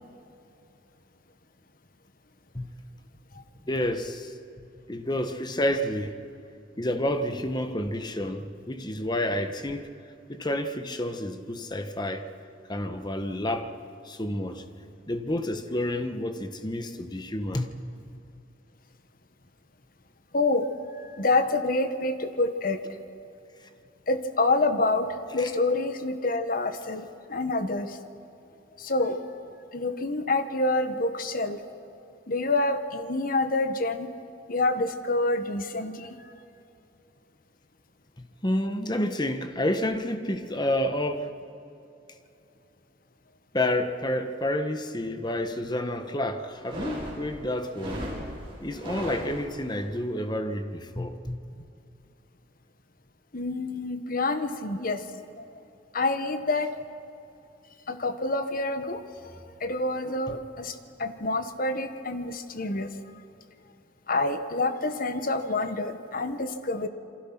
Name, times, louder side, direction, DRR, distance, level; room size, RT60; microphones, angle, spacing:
voice 1, 3.7-4.3 4.9-6.2 6.8-9.9 10.3-12.3 12.7-13.7 14.0-14.6 15.1-17.7 25.4-25.5 38.4-41.3 43.5-48.1 48.6-51.4 60.3-60.4, left 1 dB, 25° left, 1.3 m, -29 dB
voice 2, 20.3-20.7 20.9-22.8 24.1-28.0 28.8-29.4 29.7-31.6 32.3-34.1 34.5-36.2 53.3-55.0 55.4-55.5 55.9-56.7 57.9-59.0 59.6-62.9 64.1-66.9, left 2 dB, 50° left, 1.4 m, -27 dB
sound 1, 46.5-49.8, equal, 30° right, 6.4 m, -37 dB
28.0 x 24.5 x 6.0 m
head